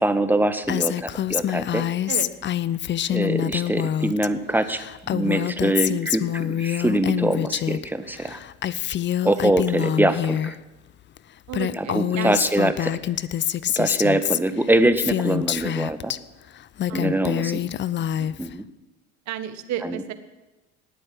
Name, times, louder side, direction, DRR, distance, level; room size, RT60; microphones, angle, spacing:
voice 1, 0.0-1.8 3.1-4.8 5.1-8.4 9.2-10.6 11.8-12.9 13.7-16.1 16.9-17.6 18.4-18.6 19.8-20.0, right 1 dB, 5° right, 10 dB, 1.3 m, -23 dB
Female speech woman speaking, 0.7-4.3 4.5-7.9 8.1-10.5 11.2-11.3 11.5-16.2 16.6-18.5, left 11 dB, 35° left, 0.6 m, -26 dB
voice 2, 11.5-12.4 16.9-17.5 18.0-18.3 19.3-20.1, right 9 dB, 55° right, 10 dB, 1.6 m, -33 dB
19.0 x 7.8 x 7.8 m, 1.1 s
hypercardioid pair, 75°, 33 cm